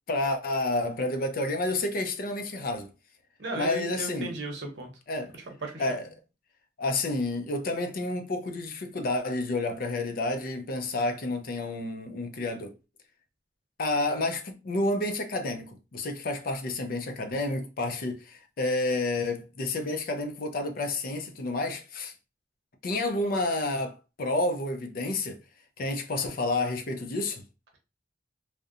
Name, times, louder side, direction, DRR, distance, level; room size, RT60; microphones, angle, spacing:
voice 1, 0.1-2.9 3.5-4.3 5.1-5.3 5.8-6.1 6.8-12.7 13.8-22.1 22.8-25.4 25.8-27.4, left 2 dB, 50° left, 0.5 m, -30 dB
voice 2, 3.4-4.9 5.5-5.9, right 2 dB, 65° right, 0.8 m, -36 dB
2.7 x 2.1 x 2.4 m
head